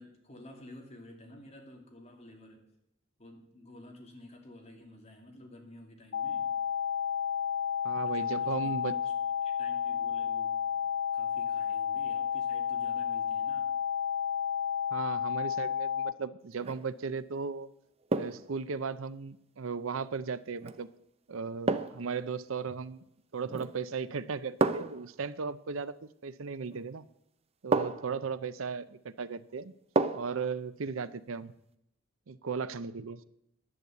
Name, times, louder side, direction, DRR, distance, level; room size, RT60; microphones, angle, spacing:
voice 1, 0.0-2.6 3.2-6.5 8.0-9.1 9.4-10.8 11.1-13.7, left 1 dB, 30° left, 1 dB, 2.6 m, -51 dB
sound 1, 6.1-16.1, left 8 dB, 65° left, 0.6 m, -31 dB
voice 2, 7.8-8.9 14.9-17.7 18.1-20.9 21.3-23.0 23.3-25.9 26.2-27.1 27.6-29.7 30.1-31.5 32.3-33.2, right 5 dB, 70° right, 15 dB, 0.6 m, -36 dB
sound 2, 16.5-16.9 18.1-18.5 20.6-20.8 21.7-22.1 23.5-23.9 24.6-25.0 26.7-26.8 27.7-28.2 30.0-30.4 30.8-30.9, right 3 dB, 30° right, 0.6 m, -30 dB
11.0 x 8.5 x 7.9 m, 0.76 s
head